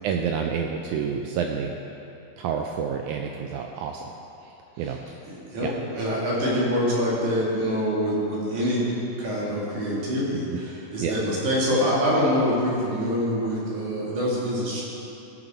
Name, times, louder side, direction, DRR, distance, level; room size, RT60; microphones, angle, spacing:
voice 1, 0.0-1.7 2.4-4.0 4.8-5.0 5.6-5.7 10.5-10.6 11.0-11.1, right 7 dB, 85° right, 3 dB, 1.7 m, -28 dB
voice 2, 5.3-8.9 9.2-14.8, equal, 60° right, -6 dB, 3.4 m, -25 dB
17.0 x 7.0 x 4.3 m, 2.8 s
omnidirectional pair, 4.1 m